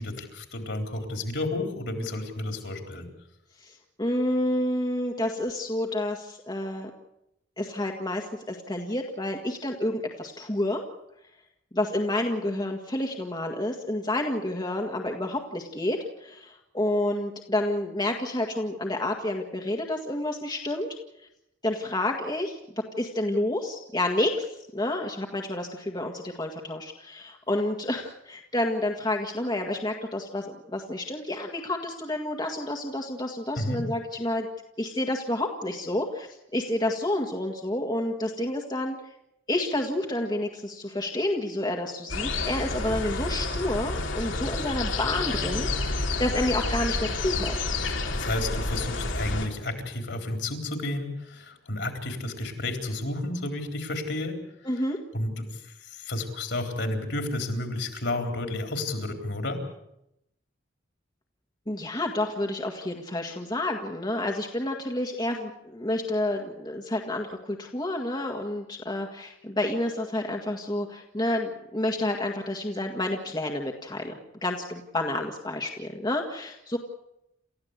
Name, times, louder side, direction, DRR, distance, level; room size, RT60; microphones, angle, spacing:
voice 1, 0.0-3.1 33.6-33.8 48.1-54.3 54.6-54.7 55.1-59.6, left 2 dB, 60° left, 4 dB, 3.9 m, -31 dB
voice 2, 3.6-6.9 7.6-10.8 11.7-20.9 21.6-34.5 34.8-39.1 39.5-47.6 54.6-55.0 61.7-76.8, left 1 dB, 20° left, 2 dB, 1.8 m, -29 dB
sound 1, 42.1-49.5, left 3 dB, 80° left, 3.1 m, -29 dB
29.0 x 14.5 x 8.2 m, 0.84 s
head